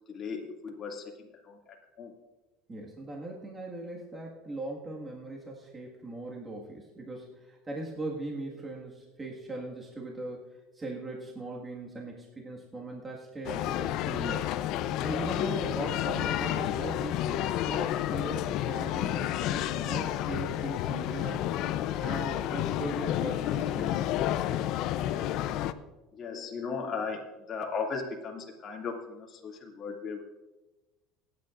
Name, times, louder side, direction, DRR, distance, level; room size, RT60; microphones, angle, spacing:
voice 1, 0.1-1.6 2.0-2.1 26.1-30.2, left 5 dB, 35° left, -1 dB, 2.4 m, -37 dB
voice 2, 2.7-10.5 10.7-14.5 15.0-21.5 22.0-24.0, right 2 dB, 20° right, -2 dB, 1.8 m, -39 dB
sound 1, 13.4-25.7, left 12 dB, 60° left, 0.5 m, -30 dB
27.5 x 9.5 x 2.5 m, 1.1 s
cardioid pair, 135°, 0 cm